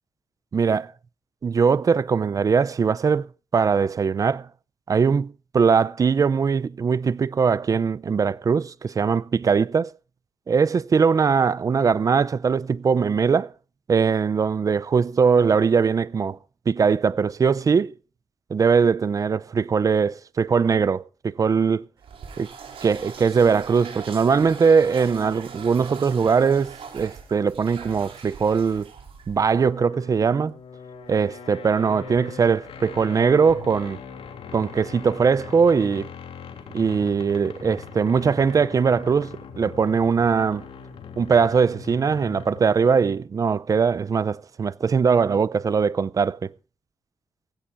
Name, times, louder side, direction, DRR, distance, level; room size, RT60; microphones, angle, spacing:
voice 1, 0.5-0.9 1.4-3.3 3.5-4.5 4.9-9.9 10.5-13.5 13.9-16.4 16.7-17.9 18.5-21.8 22.4-22.5 22.8-28.9 29.3-30.5 31.1-34.0 34.5-36.1 36.7-40.6 41.2-46.5, right 5 dB, 35° right, 0.5 m, -21 dB
sound 1, 22.0-29.6, right 6 dB, 75° right, 4.4 m, -41 dB
sound 2, 29.4-42.8, left 6 dB, 90° left, 3.2 m, -41 dB
17.5 x 16.0 x 2.6 m
wide cardioid pair, 140°, 10 cm